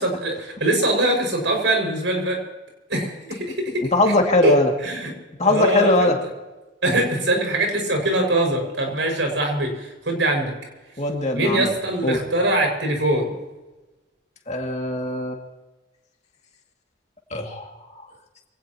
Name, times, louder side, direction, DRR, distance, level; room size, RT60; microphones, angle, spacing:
voice 1, 0.0-2.4 2.9-3.9 4.4-5.1 5.4-6.1 6.8-10.5 11.3-13.4, right 1 dB, 75° right, 2 dB, 5.9 m, -22 dB
voice 2, 3.9-4.7 5.4-6.1 11.0-11.7 12.0-12.2 14.5-15.4 17.3-17.7, left 2 dB, 35° left, 1 dB, 2.3 m, -20 dB
24.5 x 18.0 x 3.0 m, 1.1 s
head